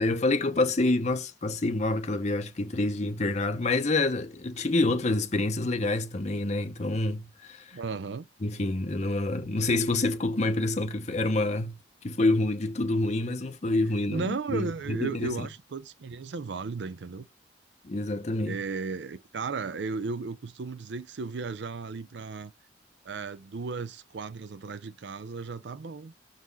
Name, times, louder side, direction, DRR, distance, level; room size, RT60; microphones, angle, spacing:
voice 1, 0.0-7.8 8.4-11.8 12.0-15.5 17.8-18.6, left 2 dB, 40° left, 0.7 m, -27 dB
voice 2, 7.7-8.3 14.1-17.3 18.5-22.5 23.0-26.1, right 4 dB, 70° right, 0.5 m, -35 dB
6.2 x 3.9 x 3.9 m
head